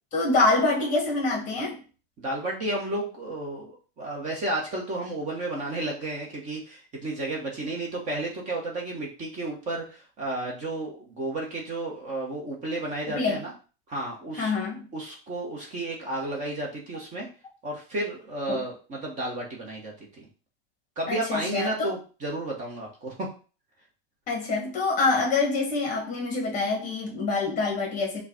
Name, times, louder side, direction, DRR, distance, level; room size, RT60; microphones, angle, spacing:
voice 1, 0.1-1.8 13.1-13.4 14.4-14.8 18.5-18.6 21.1-21.9 24.3-28.2, left 3 dB, 25° left, 1.3 m, -26 dB
voice 2, 2.2-13.5 13.9-14.5 14.9-17.3 17.6-20.3 21.0-23.3, right 2 dB, 25° right, 1.1 m, -32 dB
4.8 x 2.4 x 4.2 m
supercardioid pair, 160°, 29 cm